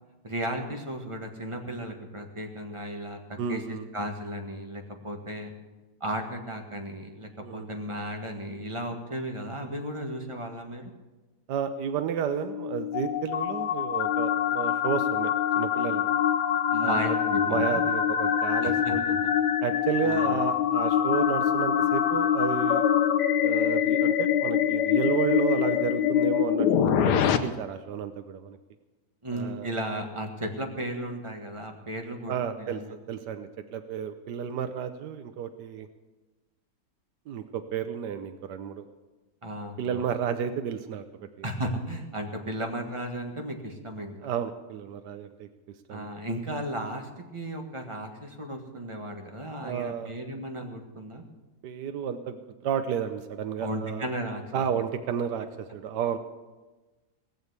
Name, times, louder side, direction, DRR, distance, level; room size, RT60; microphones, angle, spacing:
voice 1, 0.2-5.5 6.0-10.9 16.7-17.8 18.6-18.9 19.2-19.3 20.0-20.3 29.2-32.9 39.4-40.0 41.4-44.1 45.9-51.2 53.6-54.4, right 1 dB, 20° right, 3 dB, 1.6 m, -35 dB
voice 2, 3.4-3.8 7.4-7.7 11.5-16.1 16.8-17.2 17.4-19.2 19.6-22.8 23.4-28.6 29.3-29.7 32.3-35.9 37.3-38.8 39.8-41.5 44.2-45.5 45.9-46.1 49.6-50.1 51.6-54.0 54.5-56.2, right 8 dB, 85° right, 9 dB, 1.4 m, -32 dB
sound 1, 12.3-27.4, left 9 dB, 85° left, 1.4 m, -25 dB
18.5 x 7.1 x 8.2 m, 1.2 s
omnidirectional pair, 1.7 m